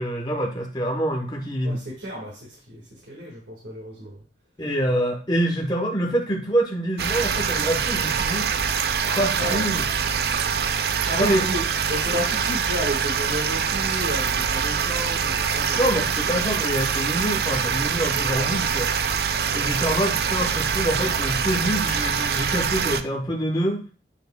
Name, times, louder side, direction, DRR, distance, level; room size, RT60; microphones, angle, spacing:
voice 1, 0.0-1.9 4.6-8.5 9.1-9.9 11.2-11.5 15.7-18.9 19.5-23.8, right 1 dB, 25° left, 1 dB, 0.9 m, -25 dB
voice 2, 1.6-4.2 9.0-9.6 11.1-11.6 11.9-16.5 18.1-18.5 19.3-19.5, equal, 85° right, -4 dB, 1.7 m, -33 dB
sound 1, 7.0-23.0, right 6 dB, 60° right, 0.4 m, -24 dB
8.8 x 4.7 x 2.2 m, 0.37 s
head